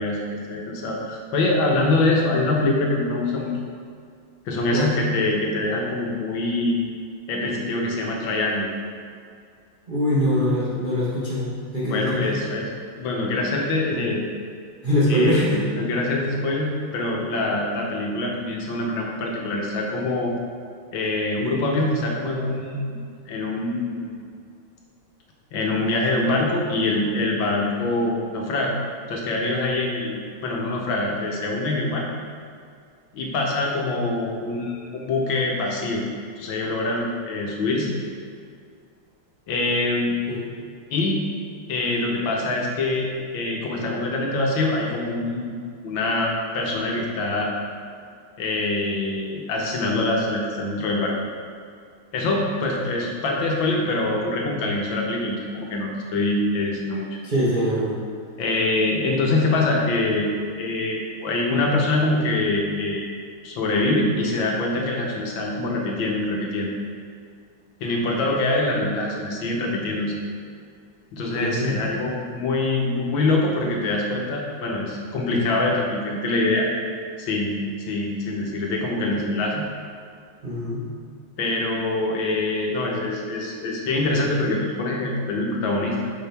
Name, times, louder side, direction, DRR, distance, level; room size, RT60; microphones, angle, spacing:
voice 1, 0.0-3.5 4.5-6.8 7.3-8.7 11.8-12.7 13.0-14.2 15.1-20.3 20.9-23.0 23.3-24.2 25.5-28.7 29.1-30.2 30.4-32.1 33.1-36.0 36.4-38.0 39.5-40.2 40.9-41.2 41.7-45.5 45.8-47.5 48.4-51.1 52.1-57.1 58.4-60.3 60.6-63.1 63.4-66.7 67.8-70.1 71.1-76.7 77.3-77.6 77.9-79.6 81.4-86.0, left 2 dB, 70° left, -1 dB, 1.6 m, -24 dB
voice 2, 9.9-12.4 14.8-15.6 40.3-40.5 57.2-58.0 71.2-71.8 80.4-80.8, equal, 35° right, -9 dB, 0.9 m, -23 dB
6.9 x 5.0 x 3.4 m, 2.1 s
omnidirectional pair, 2.3 m